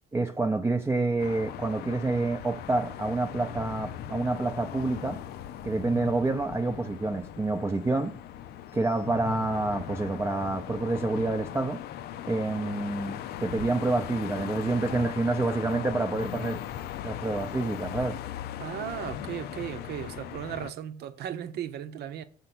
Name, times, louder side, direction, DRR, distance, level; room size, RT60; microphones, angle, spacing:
voice 1, 0.1-5.2 5.6-8.1 8.7-11.8 12.3-16.6 17.0-18.2, right 2 dB, 15° right, 0.6 m, -28 dB
sound 1, 1.2-20.7, left 11 dB, 70° left, 0.5 m, -39 dB
voice 2, 18.6-22.2, right 10 dB, 70° right, 0.9 m, -36 dB
6.8 x 4.4 x 6.0 m
cardioid pair, 110°, 17 cm